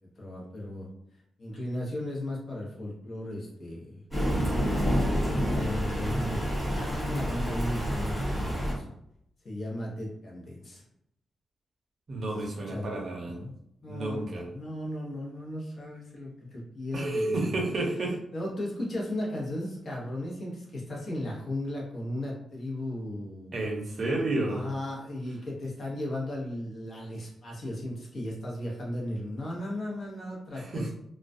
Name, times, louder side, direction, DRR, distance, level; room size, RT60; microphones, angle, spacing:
voice 1, 0.2-0.9 1.4-4.0 5.0-8.8 9.4-10.8 12.2-13.5 13.8-17.6 18.3-23.5 24.5-30.9, left 1 dB, 45° left, -3 dB, 0.8 m, -36 dB
Thunder, 4.1-8.7, equal, 10° left, 1.2 m, -28 dB
voice 2, 12.1-13.4 13.9-14.5 16.9-18.2 23.5-24.6 30.6-30.9, right 2 dB, 45° right, 0 dB, 0.6 m, -31 dB
2.3 x 2.1 x 2.5 m, 0.75 s
wide cardioid pair, 140°, 0 cm